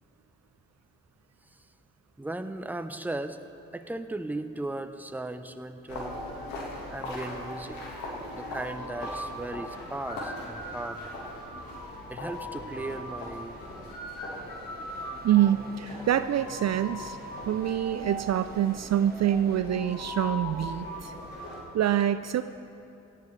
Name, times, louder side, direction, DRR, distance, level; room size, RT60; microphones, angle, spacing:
voice 1, 2.2-3.4 3.7-6.2 6.9-7.8 8.3-11.1 12.1-13.9, right 2 dB, 5° right, 9 dB, 0.7 m, -37 dB
sound 1, 5.9-21.6, left 1 dB, 85° left, 1.7 m, -39 dB
sound 2, 14.3-19.6, right 3 dB, 30° right, 1.2 m, -51 dB
voice 2, 15.2-17.2 17.5-21.1 21.7-22.4, right 11 dB, 50° right, 12 dB, 0.4 m, -26 dB
17.5 x 11.5 x 3.2 m, 2.7 s
supercardioid pair, 45°, 33 cm